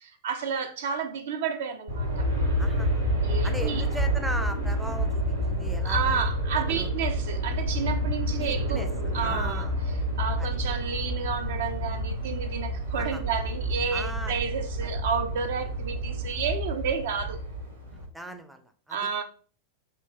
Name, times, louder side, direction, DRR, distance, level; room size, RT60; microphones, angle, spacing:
voice 1, 0.0-2.3 3.2-3.8 5.8-8.8 9.1-9.7 10.2-17.4 18.9-19.2, right 6 dB, 55° right, 0.5 m, -31 dB
Aircraft, 1.9-18.1, equal, 85° right, 0.9 m, -29 dB
voice 2, 2.6-3.1 3.4-6.2 6.7-6.9 8.4-8.9 9.2-9.7 10.4-10.5 12.9-13.2 13.9-14.3 18.1-19.0, right 1 dB, 5° right, 0.4 m, -38 dB
5.9 x 2.9 x 2.2 m
figure-of-eight pair, 90°, 0 cm